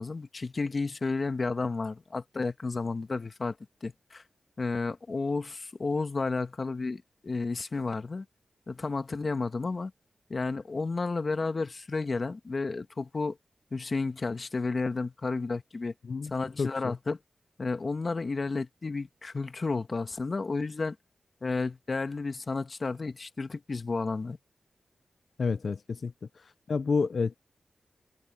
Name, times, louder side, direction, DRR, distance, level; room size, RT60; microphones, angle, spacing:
voice 1, 0.0-3.6 3.8-4.2 4.6-8.2 8.7-9.9 10.3-13.4 13.7-15.9 16.2-17.2 17.6-21.0 21.4-24.4, left 3 dB, 50° left, 1.5 m, -32 dB
voice 2, 16.6-16.9 25.4-26.1 26.7-27.3, left 4 dB, 65° left, 0.6 m, -29 dB
cardioid pair, 55°, 0 cm